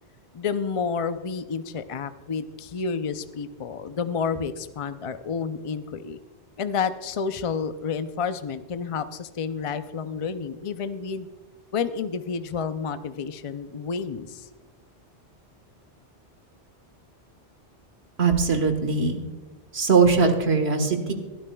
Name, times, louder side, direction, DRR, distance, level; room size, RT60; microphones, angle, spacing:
voice 1, 0.3-6.2 6.6-11.3 11.7-14.5, left 6 dB, 50° left, 10 dB, 0.4 m, -30 dB
voice 2, 18.2-19.2 19.7-21.1, right 4 dB, 65° right, 6 dB, 1.6 m, -21 dB
22.5 x 12.5 x 2.3 m, 1.2 s
omnidirectional pair, 1.2 m